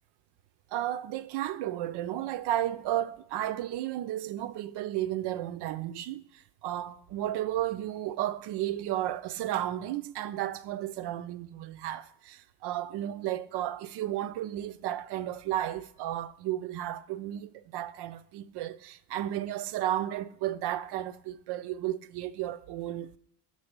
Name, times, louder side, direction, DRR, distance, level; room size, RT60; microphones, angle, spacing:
voice 1, 0.7-23.2, right 13 dB, 55° right, 0.5 m, -33 dB
6.2 x 3.8 x 5.1 m
hypercardioid pair, 65°, 49 cm